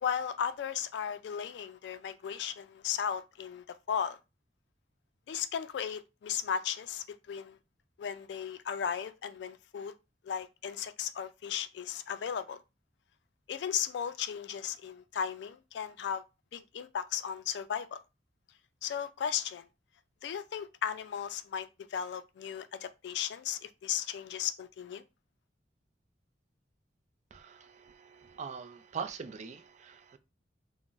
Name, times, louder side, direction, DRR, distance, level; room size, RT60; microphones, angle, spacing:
voice 1, 0.0-4.2 5.3-7.6 8.0-9.9 10.2-12.6 13.5-16.2 16.5-18.0 18.8-19.7 20.2-25.0, left 8 dB, 70° left, 0.3 m, -36 dB
voice 2, 27.3-30.2, right 6 dB, 40° right, 0.3 m, -42 dB
2.4 x 2.0 x 3.7 m
head